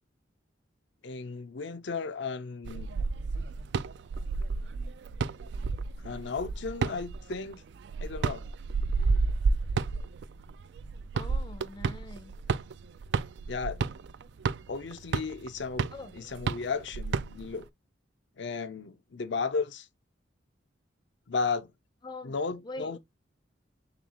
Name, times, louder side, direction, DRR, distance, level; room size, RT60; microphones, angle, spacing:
voice 1, 1.0-3.0 6.0-7.6 8.0-8.4 13.5-13.8 14.7-17.7 18.4-19.9 21.3-21.7 22.2-23.0, left 4 dB, 70° left, 0.6 m, -34 dB
sound 1, 2.6-17.6, right 4 dB, 60° right, 0.3 m, -31 dB
voice 2, 11.1-12.3 15.9-16.1 22.0-22.3 22.6-23.0, left 2 dB, 25° left, 0.5 m, -43 dB
6.7 x 2.4 x 2.8 m
head